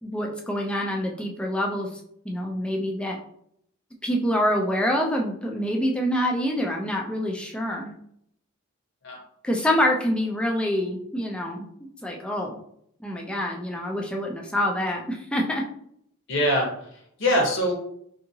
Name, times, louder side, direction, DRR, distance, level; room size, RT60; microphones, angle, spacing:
voice 1, 0.0-2.0 2.3-3.2 4.0-7.9 9.4-11.7 12.0-12.6 13.0-15.6, equal, 5° left, 0 dB, 0.3 m, -26 dB
voice 2, 16.3-17.7, equal, 60° left, 0 dB, 0.9 m, -24 dB
2.7 x 2.6 x 2.7 m, 0.70 s
head